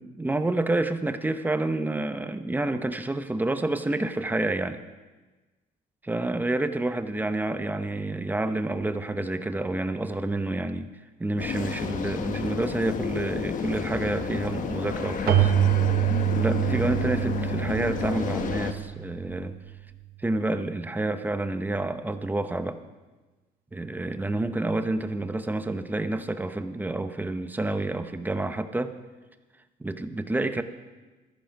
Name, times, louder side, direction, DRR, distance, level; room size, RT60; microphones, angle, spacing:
voice 1, 0.0-4.8 6.0-10.9 11.2-15.5 16.4-19.6 20.2-22.8 23.7-29.0 29.8-30.6, right 2 dB, 10° right, 9 dB, 0.8 m, -28 dB
sound 1, 11.4-18.7, left 6 dB, 50° left, 1.1 m, -31 dB
Keyboard (musical), 15.3-19.8, right 13 dB, 60° right, 1.1 m, -26 dB
13.0 x 11.0 x 5.3 m, 1.2 s
cardioid pair, 110°, 17 cm